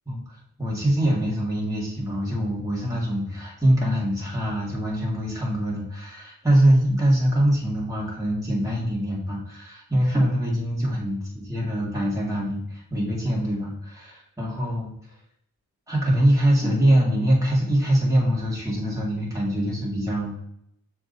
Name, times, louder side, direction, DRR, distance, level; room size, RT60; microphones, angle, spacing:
voice 1, 0.1-14.9 15.9-20.4, right 1 dB, 10° right, -5 dB, 2.2 m, -23 dB
6.9 x 3.5 x 4.0 m, 0.73 s
cardioid pair, 45°, 38 cm